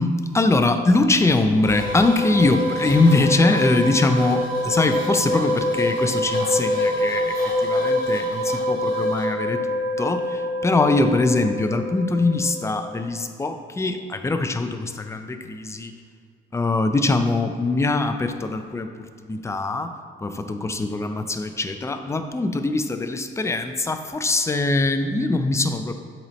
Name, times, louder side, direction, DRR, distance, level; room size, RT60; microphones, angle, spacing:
voice 1, 0.0-15.9 16.5-19.9 20.2-25.9, left 2 dB, 15° left, 7 dB, 0.4 m, -22 dB
sound 1, 1.6-13.0, left 1 dB, 45° left, 1.2 m, -25 dB
7.8 x 4.2 x 3.1 m, 2.1 s
cardioid pair, 90°, 20 cm